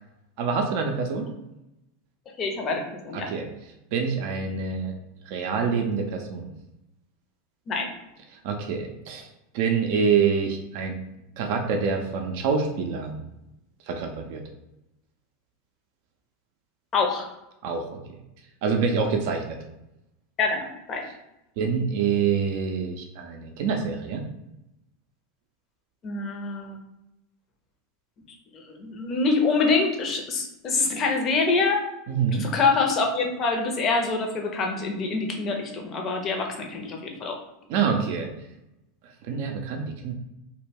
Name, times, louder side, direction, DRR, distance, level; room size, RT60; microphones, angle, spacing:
voice 1, 0.4-1.3 3.1-3.4 3.9-4.9 5.3-6.5 8.4-9.3 9.5-10.9 11.4-13.3 13.9-14.4 17.6-17.8 18.6-19.6 21.6-24.2 32.1-32.5 37.7-38.3 39.2-40.1, right 6 dB, 60° right, 3 dB, 0.4 m, -26 dB
voice 2, 2.4-3.3 7.7-7.9 16.9-17.3 20.4-21.0 26.0-26.8 28.5-31.8 32.3-37.4, left 4 dB, 40° left, 2 dB, 0.6 m, -25 dB
2.1 x 2.1 x 3.3 m, 0.90 s
hypercardioid pair, 90°, 0 cm